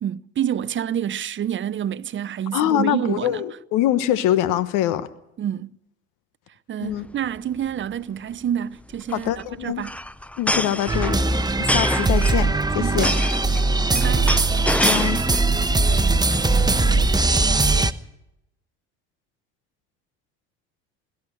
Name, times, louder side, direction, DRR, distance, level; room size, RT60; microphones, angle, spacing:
voice 1, 0.0-3.4 5.4-5.8 6.7-9.3 9.6-10.0 12.8-13.1 13.9-14.4, right 9 dB, 35° right, 0.7 m, -28 dB
voice 2, 2.5-5.1 6.8-7.1 9.1-9.8 10.4-11.2 11.6-13.1 14.8-15.2, left 12 dB, 65° left, 1.2 m, -23 dB
sound 1, 6.9-7.1 7.4-7.5 7.7-7.9 8.9-15.5 15.9-16.4, left 1 dB, 5° left, 0.7 m, -27 dB
sound 2, 10.9-17.9, right 3 dB, 10° right, 1.1 m, -20 dB
21.5 x 13.5 x 9.9 m
hypercardioid pair, 65°, 33 cm